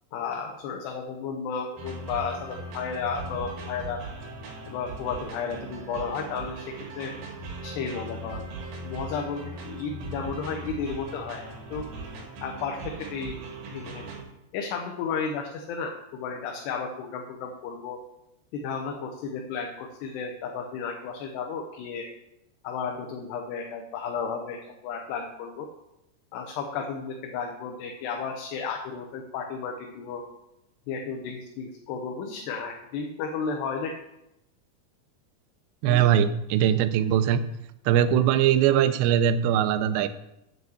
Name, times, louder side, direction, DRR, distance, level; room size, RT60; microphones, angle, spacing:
voice 1, 0.1-4.0 4.7-7.1 7.6-8.4 8.8-11.4 11.7-11.9 12.4-13.4 13.7-14.0 14.5-18.0 18.5-22.1 22.6-25.7 26.3-30.2 30.9-33.9 35.9-36.1, left 5 dB, 80° left, 2 dB, 2.9 m, -33 dB
sound 1, 1.8-14.2, right 2 dB, 70° right, 3.6 m, -39 dB
voice 2, 35.8-37.4 37.9-40.1, right 10 dB, 85° right, 12 dB, 2.8 m, -21 dB
7.7 x 5.9 x 7.7 m, 0.86 s
omnidirectional pair, 4.9 m